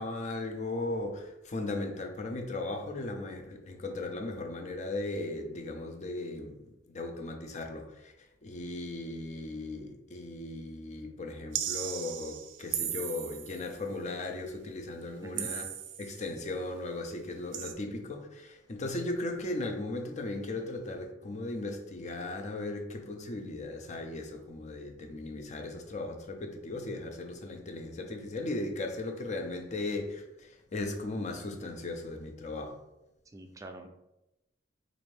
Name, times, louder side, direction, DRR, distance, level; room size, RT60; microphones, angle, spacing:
voice 1, 0.0-8.1 8.4-15.6 16.0-32.8, left 2 dB, 40° left, 0.5 m, -37 dB
sound 1, 11.5-13.7 15.4-16.2 17.5-17.7, right 10 dB, 90° right, 0.4 m, -36 dB
voice 2, 33.3-33.9, right 1 dB, 15° right, 0.4 m, -44 dB
4.2 x 2.5 x 3.2 m
head